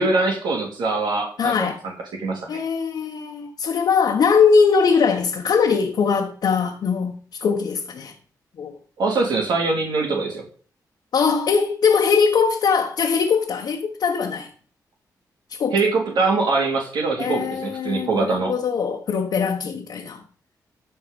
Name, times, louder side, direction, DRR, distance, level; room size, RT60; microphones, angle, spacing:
voice 1, 0.0-1.9 2.2-2.6 9.0-10.4 15.7-18.5, right 3 dB, 85° right, 3.0 m, -23 dB
voice 2, 1.4-1.8 2.5-8.1 8.6-8.7 11.1-14.5 15.5-15.8 17.2-20.2, left 5 dB, 75° left, 1.3 m, -21 dB
13.5 x 4.8 x 5.3 m
cardioid pair, 75°, 7 cm